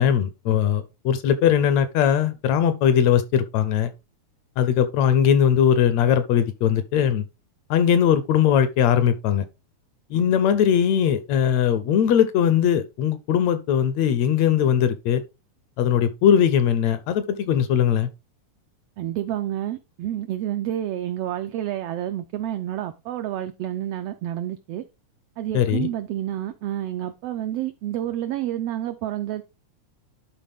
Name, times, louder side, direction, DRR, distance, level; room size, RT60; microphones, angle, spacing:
voice 1, 0.0-3.9 4.6-7.2 7.7-9.5 10.1-15.2 15.8-18.1 25.5-25.9, left 9 dB, 80° left, 1.8 m, -20 dB
voice 2, 19.0-24.8 25.4-29.4, right 12 dB, 85° right, 1.3 m, -29 dB
11.5 x 4.2 x 3.5 m
omnidirectional pair, 3.4 m